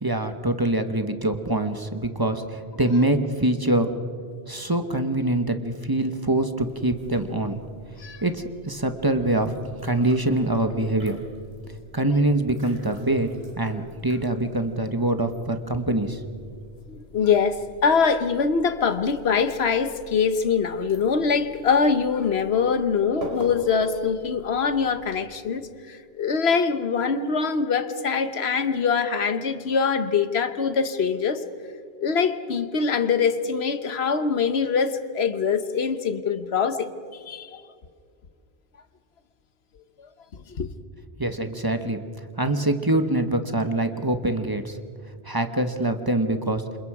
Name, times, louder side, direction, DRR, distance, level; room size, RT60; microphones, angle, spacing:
voice 1, 0.0-3.9 4.5-7.6 8.2-9.5 9.8-11.2 11.9-13.3 13.6-16.3 41.2-42.0 42.4-44.8 45.2-46.6, right 1 dB, 20° right, 1.1 m, -24 dB
sound 1, 6.6-25.2, equal, 80° right, 4.1 m, -46 dB
voice 2, 16.9-31.4 32.0-36.9 37.3-37.6 40.5-40.7, left 5 dB, 90° left, 1.3 m, -23 dB
28.0 x 27.0 x 4.9 m
omnidirectional pair, 1.0 m